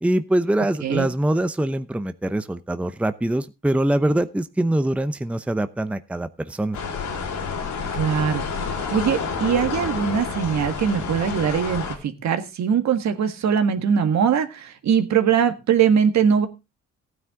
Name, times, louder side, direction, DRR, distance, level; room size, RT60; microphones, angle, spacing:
voice 1, 0.0-6.8, right 1 dB, 5° right, 11 dB, 0.7 m, -23 dB
sound 1, 6.7-12.0, left 5 dB, 75° left, 4.5 m, -29 dB
voice 2, 7.9-8.5 8.9-16.5, right 7 dB, 65° right, 8 dB, 1.8 m, -21 dB
15.0 x 9.5 x 3.7 m, 0.26 s
cardioid pair, 90°, 30 cm